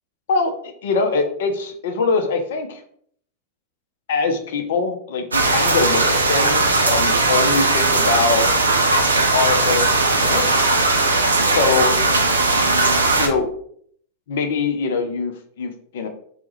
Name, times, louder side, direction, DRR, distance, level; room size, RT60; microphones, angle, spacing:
voice 1, 0.8-2.8 4.1-8.5 9.3-10.6 11.5-11.9 13.2-13.5 14.3-16.1, left 4 dB, 65° left, 6 dB, 0.4 m, -23 dB
sound 1, 5.3-13.3, right 2 dB, 80° right, 0.3 m, -18 dB
2.2 x 2.0 x 2.9 m, 0.63 s
figure-of-eight pair, 90°, 0 cm